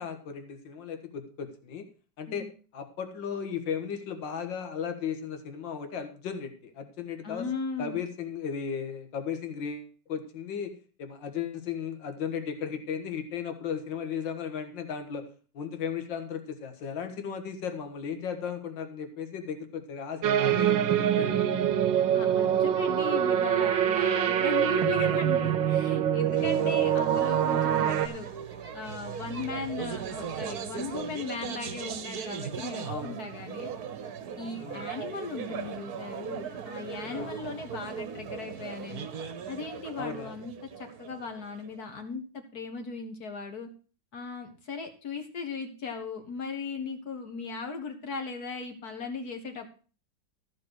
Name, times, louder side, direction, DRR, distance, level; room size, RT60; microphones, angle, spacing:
voice 1, 0.0-1.8 2.2-2.5 2.7-7.5 7.8-10.7 11.0-15.2 15.5-21.7 26.3-26.8 32.8-33.2 34.6-34.9 37.0-37.3 40.0-40.3, left 7 dB, 75° left, 7 dB, 2.1 m, -36 dB
voice 2, 7.2-8.0 22.1-28.3 28.7-33.7 34.4-39.1 39.5-43.7 44.1-49.7, left 4 dB, 55° left, 5 dB, 1.6 m, -37 dB
sound 1, 20.2-28.1, right 10 dB, 80° right, 1.5 m, -25 dB
sound 2, 26.4-41.8, right 7 dB, 60° right, 1.3 m, -39 dB
13.5 x 5.4 x 6.1 m, 0.38 s
omnidirectional pair, 2.1 m